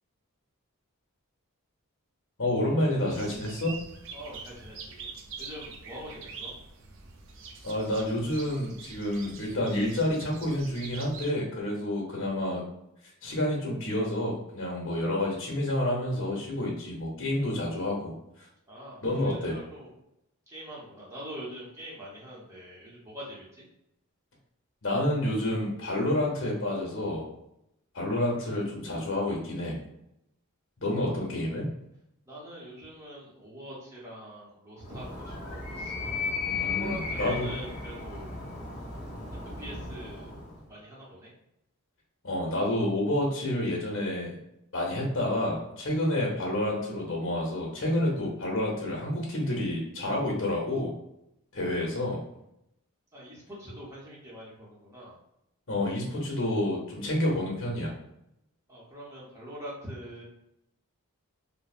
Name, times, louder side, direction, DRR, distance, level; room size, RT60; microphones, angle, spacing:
voice 1, 2.4-3.7 7.6-12.6 13.2-18.1 19.0-19.6 24.8-27.3 27.9-29.8 30.8-31.7 36.5-37.5 42.2-44.3 44.7-50.9 51.5-52.2 55.7-57.9, left 1 dB, 60° left, -2 dB, 0.8 m, -29 dB
sound 1, 3.1-11.3, right 5 dB, 55° right, 0.4 m, -45 dB
voice 2, 4.1-5.1 5.4-6.6 18.7-19.9 20.5-23.6 31.0-31.1 32.3-35.9 36.6-38.3 39.4-40.3 40.7-41.3 51.7-51.9 53.1-55.2 58.7-60.2, equal, 15° right, -7 dB, 0.8 m, -43 dB
Animal, 34.8-40.7, left 4 dB, 30° left, 0.7 m, -35 dB
3.1 x 2.1 x 2.4 m, 0.81 s
head